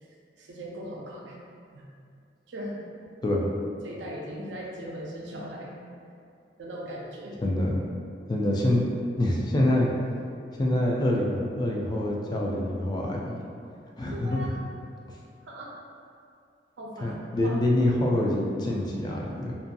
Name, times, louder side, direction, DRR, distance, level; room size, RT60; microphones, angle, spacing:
voice 1, 0.4-1.4 1.7-1.8 2.5-2.9 3.8-5.7 6.6-7.3 14.1-14.6 15.4-15.7 16.8-17.2 17.4-17.6, equal, 80° right, -3 dB, 0.5 m, -38 dB
voice 2, 7.4-7.8 8.3-8.8 9.2-9.9 10.5-13.4 14.0-14.5 17.0-19.6, left 1 dB, 25° left, -2 dB, 0.3 m, -25 dB
2.6 x 2.5 x 2.2 m, 2.3 s
head